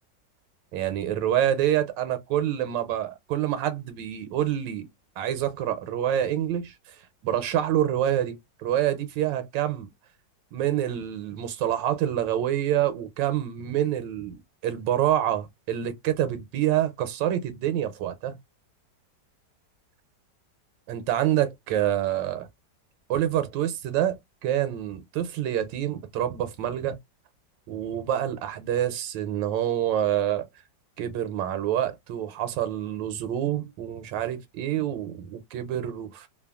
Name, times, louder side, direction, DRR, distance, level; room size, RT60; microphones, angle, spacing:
voice 1, 0.7-4.9 5.2-6.7 7.2-9.9 10.5-14.3 14.6-18.4 20.9-22.5 23.1-27.0 27.7-30.4 31.0-36.3, right 11 dB, 90° right, 1.3 m, -27 dB
3.0 x 2.2 x 2.2 m
omnidirectional pair, 1.9 m